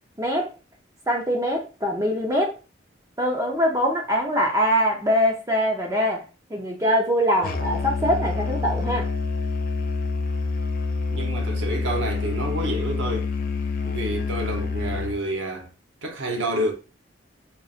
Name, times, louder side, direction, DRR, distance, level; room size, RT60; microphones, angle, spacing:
voice 1, 0.2-0.5 1.1-2.5 3.2-6.2 6.5-9.1, equal, 15° right, 0.7 m, -23 dB
Musical instrument, 7.4-15.2, left 4 dB, 45° left, 0.4 m, -27 dB
voice 2, 11.1-13.3 13.8-15.7 16.0-16.7, right 1 dB, 85° right, 0.8 m, -28 dB
5.0 x 2.5 x 2.4 m
head